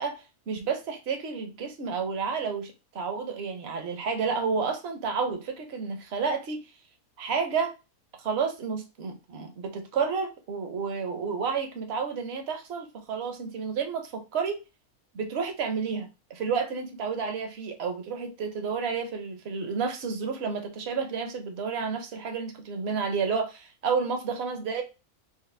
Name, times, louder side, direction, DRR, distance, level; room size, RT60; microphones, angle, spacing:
voice 1, 0.0-6.6 7.2-7.7 8.2-14.6 15.1-24.8, right 5 dB, 55° right, 0.9 m, -31 dB
4.8 x 2.1 x 3.3 m
omnidirectional pair, 1.5 m